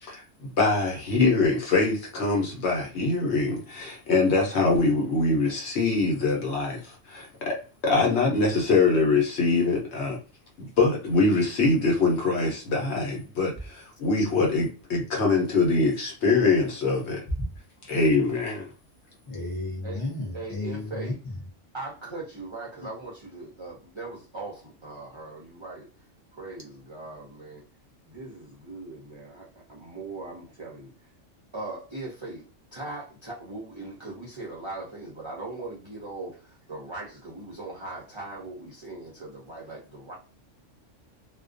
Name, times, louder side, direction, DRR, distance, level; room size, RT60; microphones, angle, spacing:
voice 1, 0.0-7.6 7.8-10.2 10.6-17.2 17.8-18.7, left 3 dB, 65° left, 0.9 m, -24 dB
voice 2, 19.3-21.1, left 2 dB, 35° left, 0.3 m, -33 dB
voice 3, 20.3-21.2 21.7-25.9 26.4-27.6 28.1-30.9 31.5-32.4 32.7-40.1, right 2 dB, 45° right, 0.4 m, -39 dB
2.4 x 2.1 x 2.4 m
omnidirectional pair, 1.3 m